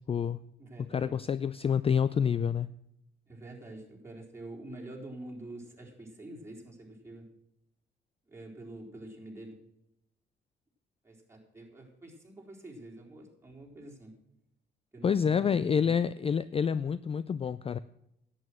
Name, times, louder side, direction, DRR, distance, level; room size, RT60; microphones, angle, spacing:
voice 1, 0.1-0.4 0.9-2.7 15.0-17.8, left 7 dB, 30° left, 16 dB, 0.4 m, -28 dB
voice 2, 0.6-1.1 3.2-7.3 8.3-9.6 11.0-14.1 14.9-16.0, right 2 dB, 15° right, -2 dB, 4.1 m, -46 dB
11.0 x 8.8 x 6.2 m, 0.82 s
cardioid pair, 90°, 20 cm